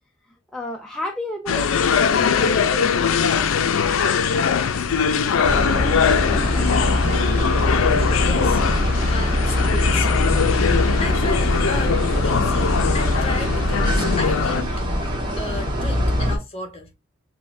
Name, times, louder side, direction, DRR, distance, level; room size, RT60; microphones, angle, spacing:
voice 1, 0.5-3.5, left 1 dB, ahead, 0.4 m, -32 dB
sound 1, 1.5-14.6, left 6 dB, 75° left, 0.4 m, -21 dB
sound 2, 5.4-16.4, left 1 dB, 25° right, 1.1 m, -22 dB
voice 2, 8.2-8.6 9.0-10.4 11.0-14.9 15.4-16.9, left 3 dB, 30° left, 1.0 m, -33 dB
5.4 x 2.2 x 2.6 m
head